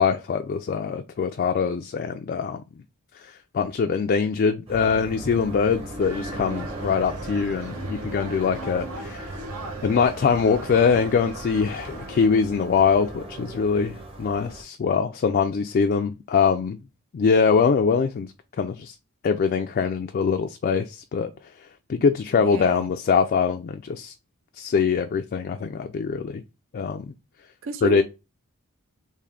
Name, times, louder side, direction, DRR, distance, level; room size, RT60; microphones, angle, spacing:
voice 1, 0.0-2.6 3.1-9.3 9.8-16.8 17.1-18.3 18.6-19.0 19.2-21.3 21.9-24.1 24.6-26.4 26.7-27.1 27.8-28.0, left 5 dB, 40° left, 0.3 m, -23 dB
sound 1, 4.7-14.6, right 1 dB, 25° right, 0.8 m, -38 dB
sound 2, 6.0-12.3, right 2 dB, 80° right, 0.9 m, -39 dB
voice 2, 22.4-22.9 27.6-28.0, right 5 dB, 60° right, 0.5 m, -31 dB
3.7 x 2.5 x 3.3 m
head